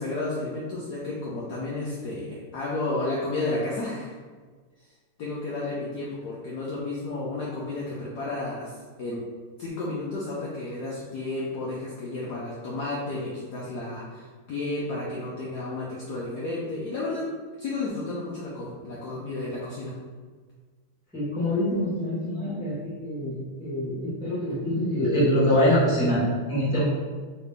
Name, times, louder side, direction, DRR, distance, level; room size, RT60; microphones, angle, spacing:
voice 1, 0.0-4.1 5.2-9.2 9.6-17.2 17.6-19.9, left 2 dB, 85° left, -6 dB, 0.9 m, -32 dB
voice 2, 21.1-26.8, equal, 5° right, -10 dB, 0.7 m, -25 dB
3.2 x 2.9 x 3.4 m, 1.5 s
omnidirectional pair, 2.4 m